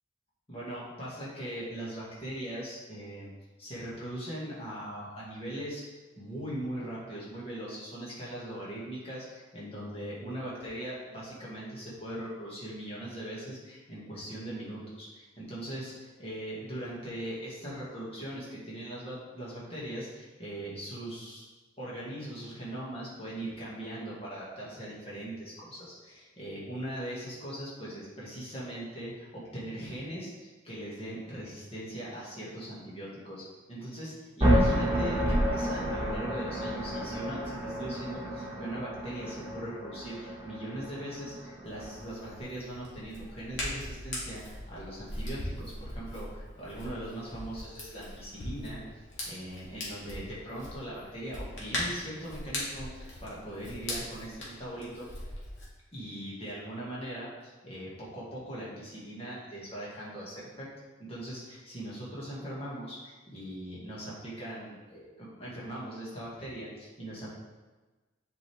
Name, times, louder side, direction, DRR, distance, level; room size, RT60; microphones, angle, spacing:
voice 1, 0.5-3.3 3.6-21.5 21.8-48.8 49.3-55.1 55.9-60.7 61.0-67.3, right 1 dB, 30° left, -7 dB, 2.2 m, -40 dB
sound 1, 34.4-42.4, equal, 25° right, 1.7 m, -30 dB
Hands, 41.6-55.7, left 1 dB, 65° left, 2.2 m, -40 dB
7.8 x 5.4 x 3.6 m, 1.2 s
head